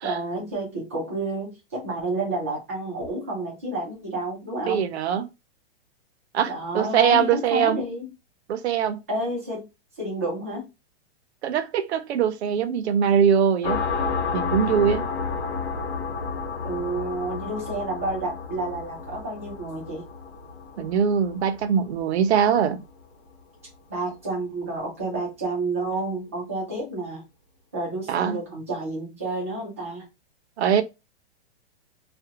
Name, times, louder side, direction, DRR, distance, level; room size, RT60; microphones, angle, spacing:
voice 1, 0.0-4.9 6.5-8.1 9.1-9.7 10.0-10.7 16.6-20.0 23.9-27.2 27.7-30.1, right 2 dB, 15° right, 0.3 m, -30 dB
voice 2, 4.7-5.3 6.3-7.8 8.5-9.0 11.4-13.8 14.3-15.0 20.8-22.8 28.1-28.4 30.6-30.8, right 8 dB, 70° right, 0.5 m, -22 dB
sound 1, 13.6-22.9, left 5 dB, 80° left, 0.8 m, -31 dB
2.4 x 2.1 x 2.7 m
supercardioid pair, 175°, 34 cm